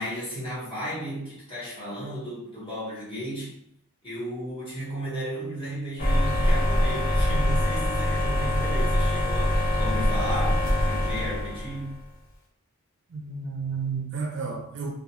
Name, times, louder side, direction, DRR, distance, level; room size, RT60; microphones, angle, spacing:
voice 1, 0.0-3.5 4.0-12.0, equal, 25° left, -9 dB, 1.1 m, -34 dB
sound 1, 6.0-11.9, left 1 dB, 40° left, 0.6 m, -24 dB
voice 2, 13.1-14.9, right 5 dB, 55° right, 1 dB, 0.5 m, -31 dB
2.3 x 2.3 x 2.9 m, 0.69 s
head